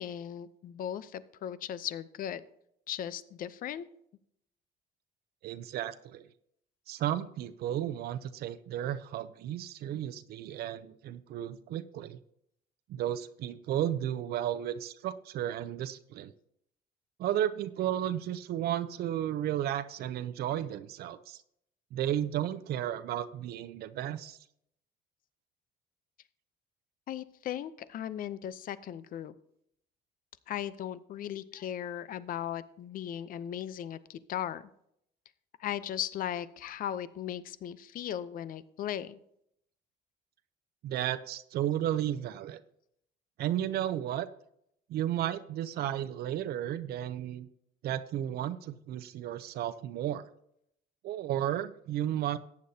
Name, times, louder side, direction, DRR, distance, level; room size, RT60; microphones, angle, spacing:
voice 1, 0.0-2.4 2.9-3.8 27.1-29.3 30.5-34.6 35.6-39.2, left 10 dB, 55° left, 15 dB, 0.6 m, -37 dB
voice 2, 5.4-6.3 6.9-12.2 12.9-16.3 17.2-21.4 21.9-24.4 40.8-42.6 43.4-44.3 44.9-47.5 47.8-50.3 51.0-52.4, right 11 dB, 70° right, 13 dB, 0.6 m, -33 dB
14.5 x 9.5 x 2.8 m, 0.72 s
cardioid pair, 110°, 17 cm